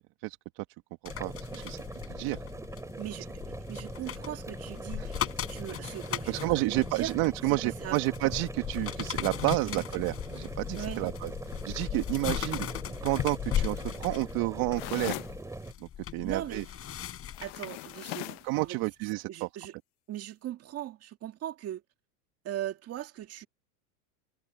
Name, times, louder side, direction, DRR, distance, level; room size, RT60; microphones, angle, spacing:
voice 1, 0.2-0.7 1.2-1.8 2.1-2.4 5.0-5.1 5.8-5.9 6.3-11.3 11.6-12.7 13.0-15.2 15.8-16.6 18.4-19.5, right 22 dB, 50° right, 1.8 m, -30 dB
sound 1, 1.0-15.7, right 2 dB, 5° right, 2.9 m, -42 dB
sound 2, 1.1-17.9 18.4-18.6, left 10 dB, 30° left, 4.7 m, -37 dB
voice 2, 3.0-7.1 7.5-8.0 9.7-9.8 10.7-11.0 16.2-16.7 17.4-18.8 19.3-19.7 20.1-21.8 22.4-23.5, right 12 dB, 30° right, 2.1 m, -39 dB
sound 3, 14.7-15.4 17.3-18.5, left 24 dB, 45° left, 0.8 m, -38 dB
supercardioid pair, 130°, 45 cm